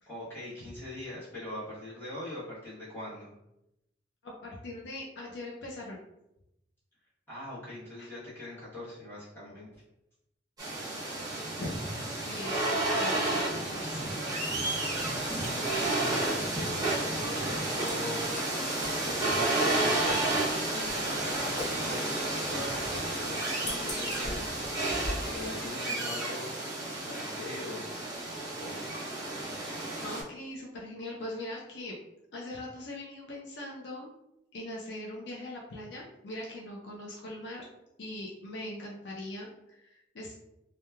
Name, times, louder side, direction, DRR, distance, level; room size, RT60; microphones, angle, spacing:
voice 1, 0.1-3.3 7.3-9.8 15.4-18.8 19.0-20.2 20.7-24.7 25.2-26.6 27.1-27.8 28.1-28.3 28.6-28.9, left 1 dB, 15° left, -11 dB, 1.0 m, -42 dB
voice 2, 4.2-6.0 8.0-8.1 11.6-14.0 16.9-17.0 30.0-32.0 32.3-34.1 34.5-37.7 38.0-40.3, left 1 dB, 65° left, -3 dB, 0.5 m, -41 dB
sound 1, 10.6-30.2, right 2 dB, 20° right, 0.8 m, -31 dB
sound 2, 15.0-25.4, left 1 dB, 40° left, 0.8 m, -43 dB
2.9 x 2.2 x 2.2 m, 0.87 s
head